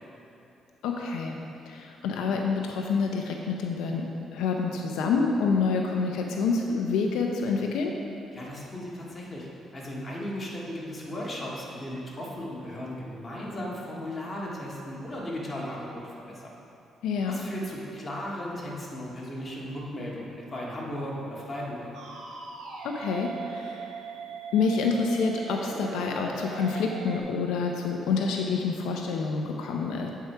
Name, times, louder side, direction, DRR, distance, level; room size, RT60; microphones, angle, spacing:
voice 1, 0.8-1.4 1.6-4.1 4.3-7.9 17.0-17.4 22.8-23.9 24.5-30.1, left 4 dB, 90° left, 2 dB, 0.5 m, -27 dB
voice 2, 8.3-16.5 17.3-21.9, left 1 dB, 25° left, -5 dB, 1.8 m, -36 dB
sound 1, 21.9-27.2, right 4 dB, 75° right, 1.2 m, -39 dB
8.1 x 4.6 x 5.6 m, 2.9 s
cardioid pair, 90°, 0 cm